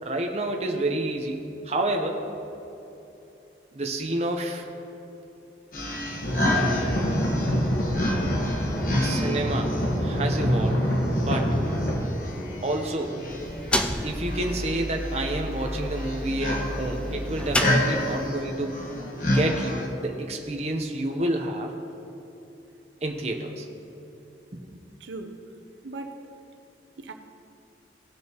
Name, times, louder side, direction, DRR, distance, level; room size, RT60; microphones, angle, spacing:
voice 1, 0.0-1.4 1.6-2.2 3.7-4.6 9.0-10.9 11.2-11.6 12.6-13.3 14.0-18.8 19.3-21.7 23.0-23.7 24.5-24.6, right 1 dB, 35° right, 3 dB, 0.8 m, -29 dB
sound 1, 5.7-19.9, left 1 dB, 50° left, 1.3 m, -30 dB
sound 2, 6.2-12.0, equal, 70° left, 1.4 m, -26 dB
sound 3, 13.3-18.4, equal, 5° left, 0.4 m, -31 dB
voice 2, 25.0-25.5 25.8-26.3 27.0-27.1, right 2 dB, 90° right, 6 dB, 0.7 m, -38 dB
17.5 x 6.4 x 3.0 m, 2.9 s
head